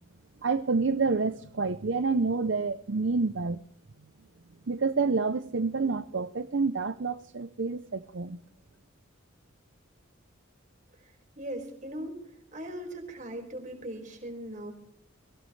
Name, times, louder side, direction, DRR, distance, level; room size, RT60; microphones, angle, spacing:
voice 1, 0.4-3.6 4.7-8.4, right 4 dB, 55° right, 0.6 m, -28 dB
voice 2, 11.0-12.2 12.5-14.7, right 1 dB, 35° right, 5.1 m, -39 dB
23.0 x 17.0 x 3.3 m
head